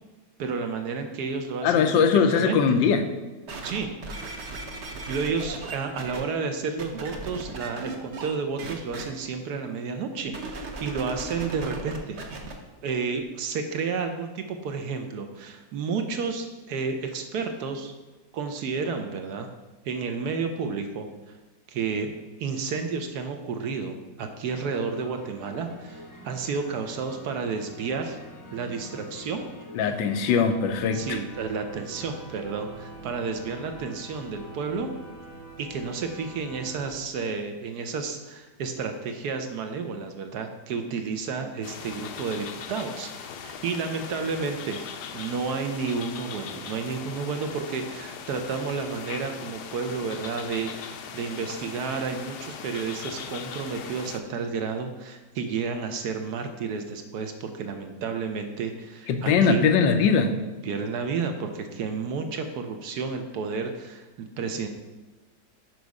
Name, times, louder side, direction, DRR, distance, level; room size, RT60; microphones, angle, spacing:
voice 1, 0.4-2.0 2.3-2.8 3.6-3.9 5.1-12.2 12.8-17.9 18.3-19.5 19.8-21.4 21.7-28.2 28.5-29.4 30.9-34.9 35.6-44.8 45.1-59.7 60.6-64.7, right 5 dB, 70° right, 6 dB, 1.1 m, -31 dB
voice 2, 1.6-3.0 29.7-31.2 59.1-60.3, left 6 dB, 90° left, 7 dB, 1.4 m, -21 dB
sound 1, 3.5-6.2 6.8-8.3 8.6-9.0 10.3-12.5 13.2-13.3, right 3 dB, 50° right, 0.9 m, -37 dB
sound 2, 24.5-36.9, equal, 20° left, 0.6 m, -45 dB
sound 3, 41.6-54.2, left 7 dB, 70° left, 1.1 m, -39 dB
6.2 x 5.3 x 4.7 m, 1.2 s
omnidirectional pair, 2.0 m